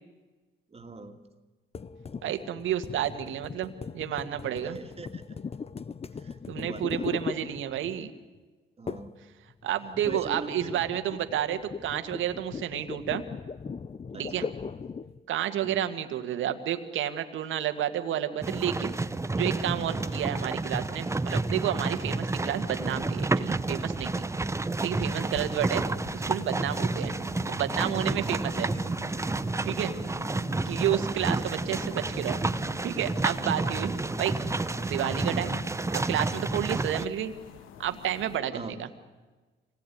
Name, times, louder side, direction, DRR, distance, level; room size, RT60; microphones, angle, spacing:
voice 1, 0.7-1.2 4.5-5.4 6.2-7.2 8.8-9.1 10.0-10.9 14.1-14.5 15.6-15.9 20.0-20.3 25.5-25.7 27.8-28.9 29.8-30.1 33.7-33.9 38.5-38.8, right 3 dB, 30° right, 6 dB, 2.4 m, -43 dB
sound 1, 1.7-8.1 8.9-9.2 9.5-15.2, left 5 dB, 30° left, 0.7 m, -39 dB
voice 2, 2.2-4.8 6.5-8.1 9.6-13.2 14.1-14.4 15.3-18.9 19.4-24.3 24.8-25.8 26.1-27.1 27.5-28.7 29.7-29.9 30.7-32.4 32.8-33.9 34.2-34.3 34.8-35.6 35.9-37.3 37.8-38.9, right 11 dB, 80° right, 8 dB, 1.9 m, -30 dB
sound 2, 18.4-37.1, right 2 dB, 15° right, 0.8 m, -30 dB
sound 3, 25.0-38.4, left 9 dB, 90° left, 1.3 m, -47 dB
25.5 x 18.5 x 9.5 m, 1.3 s
cardioid pair, 90°, 20 cm